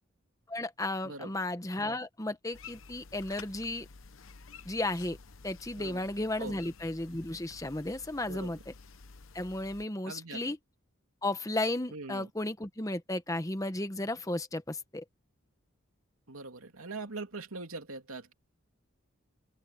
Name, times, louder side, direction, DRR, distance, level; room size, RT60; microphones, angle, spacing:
voice 1, 0.5-3.9 4.6-5.2 5.4-8.7 9.3-10.6 11.2-15.0, left 2 dB, 15° left, 1.0 m, -34 dB
voice 2, 1.0-1.4 5.8-6.1 6.4-6.6 8.3-8.6 10.0-10.5 11.9-12.3 16.3-18.3, right 3 dB, 85° right, 2.9 m, -42 dB
sound 1, 2.5-9.8, left 5 dB, 70° left, 0.9 m, -51 dB
head